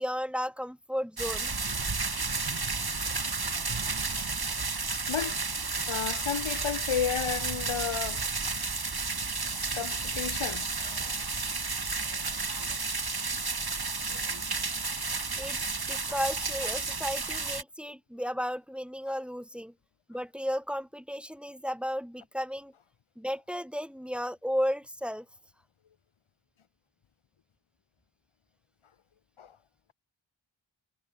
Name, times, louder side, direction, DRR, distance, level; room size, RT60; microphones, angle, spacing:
voice 1, 0.0-1.5 15.4-15.6 15.9-19.7 20.1-22.7 23.2-25.3, equal, ahead, 7.4 m, -34 dB
sound 1, 1.2-17.6, right 4 dB, 50° right, 5.0 m, -32 dB
voice 2, 5.1-5.4 5.9-8.2 9.7-11.3 14.1-14.3 29.4-29.6, left 8 dB, 90° left, 1.8 m, -33 dB
cardioid pair, 45°, 47 cm